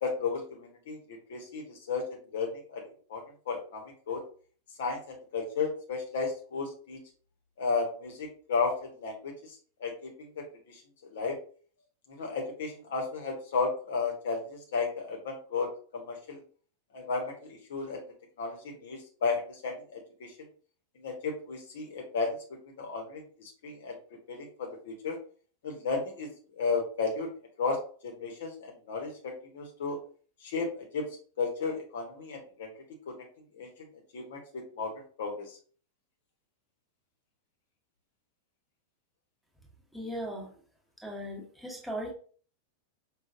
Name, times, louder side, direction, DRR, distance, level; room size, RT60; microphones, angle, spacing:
voice 1, 0.0-1.0 1.3-2.0 2.3-2.8 3.1-3.2 3.5-4.2 4.8-7.0 7.6-10.1 10.4-10.8 11.1-11.3 12.1-15.7 15.9-16.4 16.9-18.0 18.4-20.3 21.0-22.4 22.6-24.0 24.3-25.2 25.6-26.3 26.6-27.3 27.6-27.8 28.0-30.0 30.4-30.7 30.9-31.0 31.4-32.7 33.1-33.2 33.6-33.7 34.1-34.9 35.2-35.6, left 4 dB, 60° left, 1 dB, 0.9 m, -33 dB
voice 2, 39.9-40.5 41.0-42.1, equal, ahead, -2 dB, 1.1 m, -37 dB
5.0 x 2.3 x 2.5 m, 0.43 s
figure-of-eight pair, 90°, 0 cm